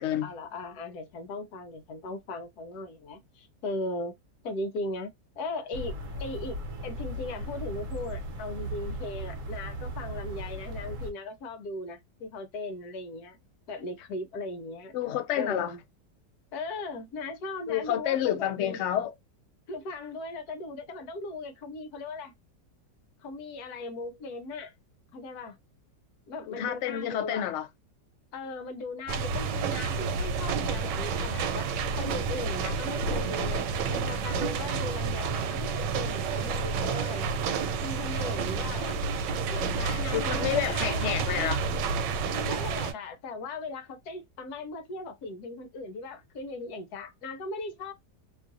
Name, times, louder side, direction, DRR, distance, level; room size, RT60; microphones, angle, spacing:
voice 1, 0.2-4.1 4.4-6.6 6.8-13.4 13.7-14.9 15.3-15.8 16.5-18.8 19.7-22.3 23.2-24.7 25.1-25.6 26.3-27.5 28.3-33.7 33.9-37.3 37.8-39.0 39.5-41.2 42.3-47.9, left 2 dB, 65° left, 1.2 m, -38 dB
sound 1, 5.7-11.1, right 1 dB, 60° right, 0.9 m, -37 dB
voice 2, 14.9-15.7 17.7-19.1 26.5-27.7 40.1-41.6, left 11 dB, 80° left, 0.6 m, -29 dB
sound 2, 29.1-42.9, right 5 dB, 80° right, 1.2 m, -30 dB
3.0 x 2.5 x 2.5 m
omnidirectional pair, 1.9 m